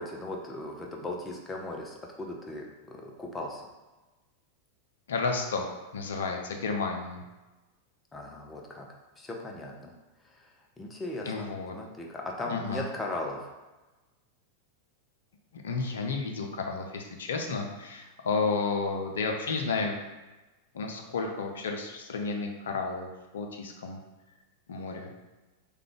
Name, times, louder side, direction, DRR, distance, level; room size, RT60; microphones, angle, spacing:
voice 1, 0.0-3.7 8.1-8.9 9.2-9.9 10.3-10.4 10.8-13.5, left 2 dB, 15° left, 0 dB, 0.6 m, -38 dB
voice 2, 5.1-7.2 11.3-11.8 12.5-12.8 15.5-19.9 20.7-23.1 23.3-24.0 24.7-25.1, left 4 dB, 65° left, 3 dB, 0.5 m, -32 dB
3.2 x 2.3 x 3.7 m, 1.1 s
figure-of-eight pair, 90°, 0 cm